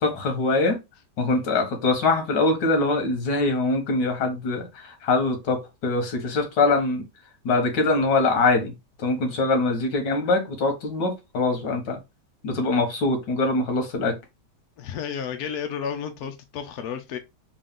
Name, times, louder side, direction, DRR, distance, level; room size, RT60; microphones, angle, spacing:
voice 1, 0.0-0.8 1.2-7.0 7.5-8.7 9.0-12.0 12.4-14.2, left 3 dB, 85° left, 1.7 m, -23 dB
voice 2, 9.1-9.5 14.8-17.2, left 7 dB, 70° left, 1.1 m, -32 dB
3.8 x 2.5 x 3.6 m
omnidirectional pair, 1.8 m